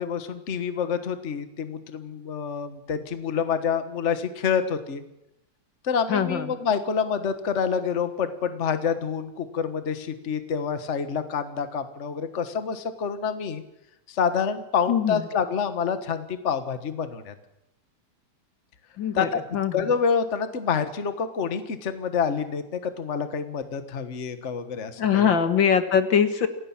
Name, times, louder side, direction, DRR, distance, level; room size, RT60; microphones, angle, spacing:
voice 1, 0.0-5.0 5.8-13.6 14.1-17.3 19.1-19.4 19.7-25.3, left 6 dB, 80° left, 10 dB, 0.6 m, -27 dB
voice 2, 6.1-6.5 14.9-15.3 19.0-19.3 19.5-19.7 25.0-26.5, left 7 dB, 50° left, 9 dB, 1.6 m, -22 dB
26.5 x 16.5 x 7.3 m, 0.85 s
omnidirectional pair, 3.7 m